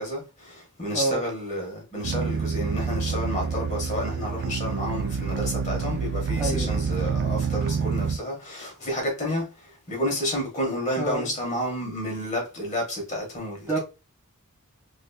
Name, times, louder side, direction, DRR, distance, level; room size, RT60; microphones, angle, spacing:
voice 1, 0.0-13.8, left 1 dB, 35° left, 1.3 m, -30 dB
sound 1, 2.0-8.2, right 5 dB, 50° right, 0.3 m, -27 dB
voice 2, 6.4-6.7 11.0-11.3 13.7-13.8, right 2 dB, 10° right, 1.4 m, -27 dB
3.3 x 3.2 x 2.3 m
head